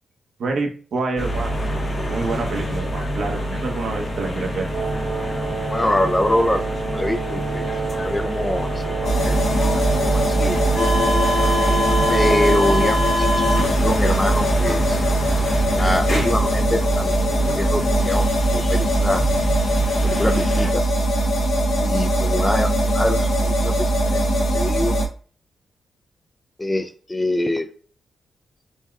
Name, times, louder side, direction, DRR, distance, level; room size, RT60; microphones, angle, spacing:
voice 1, 0.4-1.5 2.1-4.7, right 3 dB, 65° right, 3 dB, 0.9 m, -27 dB
sound 1, 1.2-20.7, equal, 35° left, 1.0 m, -25 dB
Wind instrument woodwind instrument, 4.7-13.0, right 6 dB, 90° right, 0.7 m, -29 dB
voice 2, 5.7-7.6 8.0-9.4 9.7-10.0 10.3-10.6 12.1-15.0 15.8-19.2 20.0-20.8 21.8-24.3 24.5-25.0 26.6-27.7, left 1 dB, 10° left, 6 dB, 0.4 m, -25 dB
sound 2, 9.0-25.1, right 1 dB, 90° left, 0.8 m, -21 dB
4.0 x 3.6 x 2.4 m, 0.41 s
wide cardioid pair, 145°, 0 cm